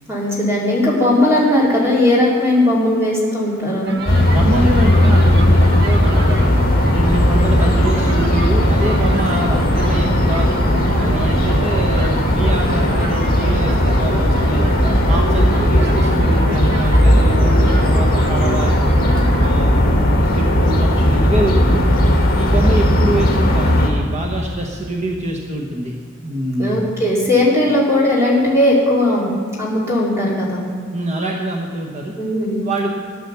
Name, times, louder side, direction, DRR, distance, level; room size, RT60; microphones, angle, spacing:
voice 1, 0.1-3.9 26.6-29.3 29.6-30.6 32.2-32.6, left 1 dB, 15° right, -5 dB, 2.8 m, -17 dB
sound 1, 3.9-19.6, right 2 dB, 55° right, 1.5 m, -29 dB
sound 2, 4.1-23.9, equal, 45° left, 2.1 m, -15 dB
voice 2, 4.2-6.5 6.9-10.6 11.0-14.7 15.1-18.7 19.4-21.8 22.3-26.0 26.2-26.8 30.9-32.1 32.6-32.9, right 1 dB, 35° right, 0 dB, 1.1 m, -25 dB
14.0 x 8.0 x 6.8 m, 2.3 s
head